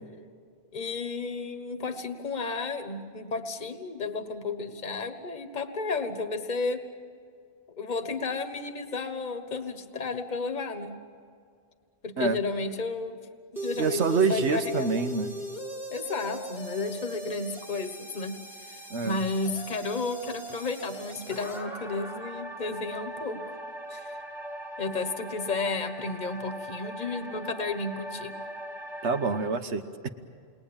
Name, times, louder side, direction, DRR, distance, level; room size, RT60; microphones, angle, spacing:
voice 1, 0.7-6.8 7.8-10.9 12.0-13.2 13.5-14.9 15.9-18.4 18.6-23.6 23.9-24.2 24.8-28.4, left 3 dB, 40° left, 7 dB, 1.6 m, -32 dB
sound 1, 13.6-29.6, right 1 dB, ahead, 1.6 m, -39 dB
voice 2, 13.8-15.4 18.9-19.2 29.0-30.1, right 4 dB, 80° right, 8 dB, 1.5 m, -26 dB
29.5 x 21.5 x 8.9 m, 2.2 s
omnidirectional pair, 1.2 m